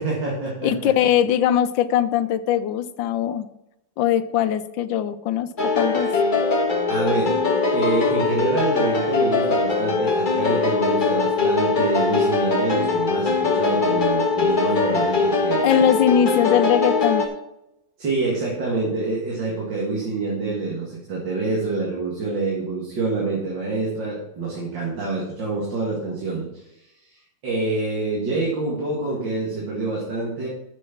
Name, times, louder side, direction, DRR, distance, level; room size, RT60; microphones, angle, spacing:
voice 1, 0.0-0.9 6.9-7.3 7.7-15.6 18.0-26.6 27.4-30.5, right 3 dB, 70° right, -4 dB, 2.7 m, -26 dB
voice 2, 0.6-3.5 4.0-6.1 15.6-17.2, left 10 dB, 80° left, 13 dB, 1.3 m, -21 dB
sound 1, 5.6-17.3, left 4 dB, 30° left, 1.1 m, -21 dB
7.7 x 6.4 x 6.0 m, 0.86 s
omnidirectional pair, 2.1 m